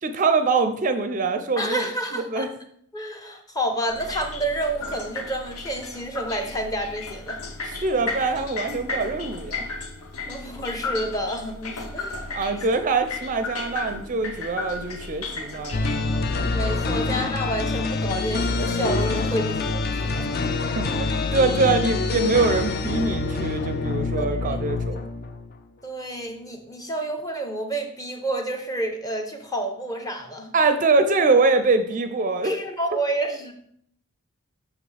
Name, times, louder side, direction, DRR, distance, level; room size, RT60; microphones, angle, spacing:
voice 1, 0.0-1.9 2.1-2.5 7.8-9.7 10.2-10.3 12.3-15.8 16.8-17.1 20.8-25.0 30.5-32.6 32.9-33.0, right 3 dB, 35° right, 9 dB, 0.4 m, -23 dB
voice 2, 1.6-2.5 2.9-7.4 10.3-12.4 16.5-20.3 24.2-24.6 25.8-30.5 32.4-33.5, right 1 dB, 15° left, 4 dB, 0.8 m, -29 dB
sound 1, 3.9-16.0, left 3 dB, 80° left, 0.9 m, -34 dB
sound 2, 15.7-25.5, left 3 dB, 45° left, 0.5 m, -26 dB
7.7 x 6.0 x 3.3 m, 0.67 s
head